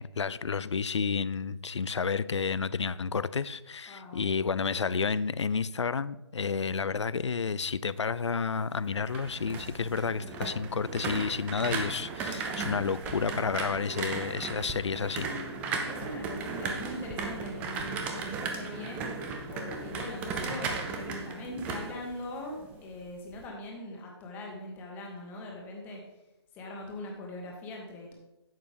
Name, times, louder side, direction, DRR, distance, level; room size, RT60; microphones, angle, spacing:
voice 1, 0.0-15.3, left 5 dB, 80° left, 0.5 m, -31 dB
voice 2, 3.9-4.3 15.8-19.0 19.5-26.0 26.5-28.1, left 1 dB, 10° left, 1.5 m, -41 dB
sound 1, 8.8-22.8 23.1-23.5, right 4 dB, 10° right, 0.5 m, -36 dB
11.0 x 7.5 x 3.4 m
figure-of-eight pair, 150°, 15 cm